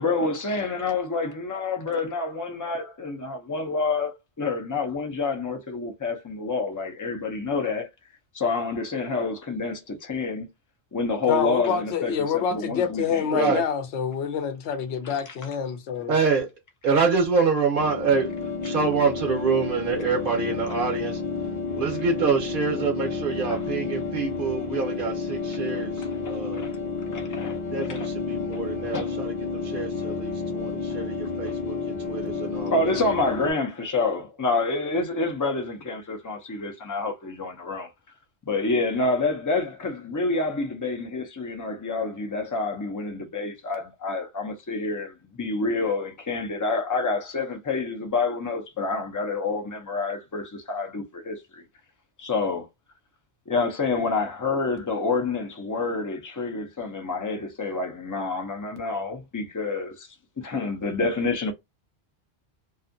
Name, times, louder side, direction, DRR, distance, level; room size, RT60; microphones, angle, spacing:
voice 1, 0.0-7.9 8.3-10.5 10.9-13.6 15.3-15.4 23.5-23.6 26.2-26.7 27.1-27.6 27.9-28.1 28.9-29.1 32.7-37.9 38.4-51.6 52.2-52.7 53.5-60.1 60.4-61.5, left 3 dB, 30° left, 0.4 m, -28 dB
voice 2, 11.3-16.2, left 7 dB, 80° left, 0.9 m, -27 dB
voice 3, 13.3-13.6 16.1-16.5 16.8-21.2 21.7-26.7 27.6-33.0, right 5 dB, 55° right, 0.8 m, -26 dB
sound 1, 17.7-33.5, left 4 dB, 45° left, 0.8 m, -31 dB
2.5 x 2.4 x 2.5 m
omnidirectional pair, 1.1 m